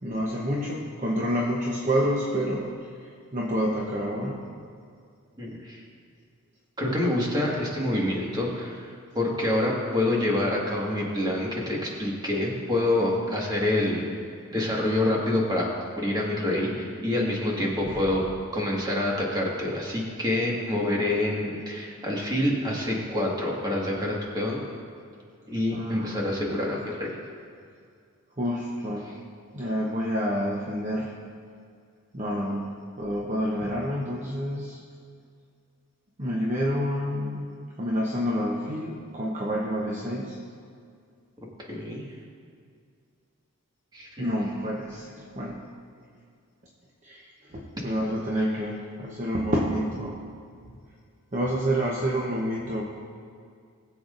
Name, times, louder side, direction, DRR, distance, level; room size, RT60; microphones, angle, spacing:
voice 1, 0.0-4.5 17.8-18.2 25.7-26.4 28.4-29.1 29.5-31.1 32.1-34.8 36.2-37.5 37.8-40.4 44.2-45.6 47.0-50.2 51.3-52.8, equal, 35° right, -3 dB, 1.0 m, -28 dB
voice 2, 5.4-5.8 6.8-14.1 14.5-15.7 16.0-24.6 25.5-27.1 41.7-42.0 43.9-44.3, left 1 dB, 20° right, -3 dB, 1.8 m, -27 dB
20.0 x 7.7 x 2.6 m, 2.2 s
head